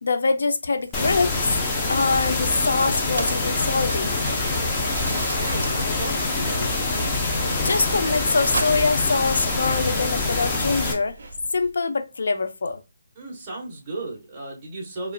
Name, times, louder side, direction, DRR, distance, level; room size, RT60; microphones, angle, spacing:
voice 1, 0.0-1.4 1.9-4.2 7.6-11.2 11.5-12.8, left 4 dB, 70° left, 0.5 m, -24 dB
Mechanisms, 0.8-10.4, right 3 dB, 75° right, 0.6 m, -37 dB
sound 1, 0.9-10.9, left 3 dB, 15° left, 0.6 m, -25 dB
Chewing mastication, 4.4-11.7, right 3 dB, 55° right, 1.1 m, -42 dB
voice 2, 5.1-7.0 13.2-15.1, right 2 dB, 20° right, 1.1 m, -35 dB
4.9 x 2.4 x 2.4 m
hypercardioid pair, 170°, 0 cm